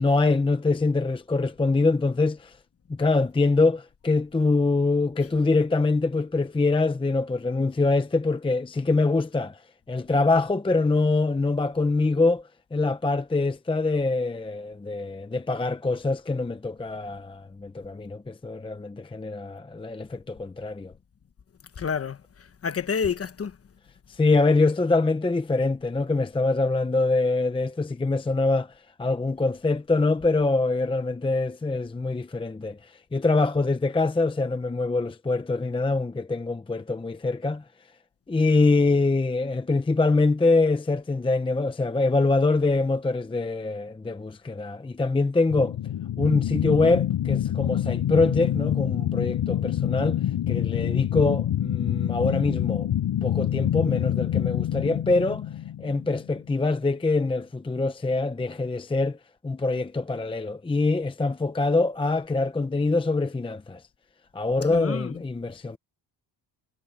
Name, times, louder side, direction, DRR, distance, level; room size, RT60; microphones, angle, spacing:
voice 1, 0.0-2.5 2.9-9.6 9.9-12.4 12.7-20.9 24.1-28.7 29.0-37.6 38.3-45.8 46.2-50.2 50.5-52.9 53.2-55.4 55.8-59.2 59.4-63.8 64.3-65.8, left 3 dB, 10° left, 0.8 m, -24 dB
voice 2, 21.8-23.6 64.6-65.2, left 6 dB, 30° left, 1.2 m, -29 dB
sound 1, 45.5-56.4, left 11 dB, 65° left, 4.9 m, -26 dB
cardioid pair, 130°, 44 cm